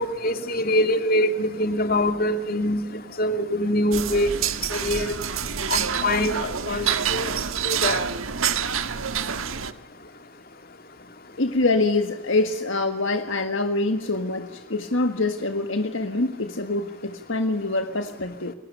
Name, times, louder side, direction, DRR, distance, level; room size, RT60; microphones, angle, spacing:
voice 1, 0.0-2.8 3.2-4.3 4.7-5.1 5.7-7.3 7.6-8.0, left 1 dB, 45° left, 8 dB, 2.4 m, -24 dB
sound 1, 3.9-9.7, right 7 dB, 75° right, 1.5 m, -27 dB
voice 2, 11.4-18.5, left 2 dB, 60° left, 7 dB, 1.7 m, -25 dB
29.0 x 22.5 x 6.8 m, 0.91 s
head